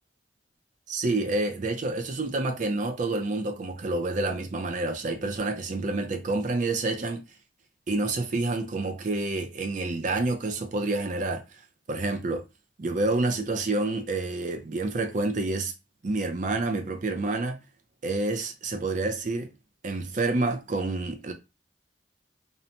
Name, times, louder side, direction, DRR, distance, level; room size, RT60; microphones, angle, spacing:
voice 1, 0.9-7.2 7.9-11.4 11.9-12.4 12.8-15.7 16.0-17.6 18.0-19.5 19.8-21.3, right 2 dB, 45° right, 0.5 m, -28 dB
2.7 x 2.1 x 2.8 m
head